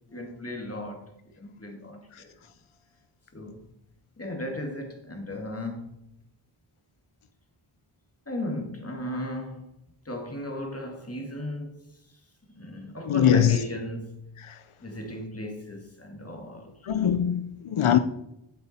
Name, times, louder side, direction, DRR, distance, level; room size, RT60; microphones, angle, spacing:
voice 1, 0.1-1.1 1.4-2.3 3.3-3.6 4.2-6.0 8.3-9.6 10.1-11.8 12.5-14.4 14.8-17.1, left 1 dB, 30° left, 2.1 m, -36 dB
voice 2, 13.1-13.6 16.9-18.0, left 9 dB, 85° left, 0.7 m, -21 dB
8.8 x 7.7 x 4.2 m
wide cardioid pair, 55°, 49 cm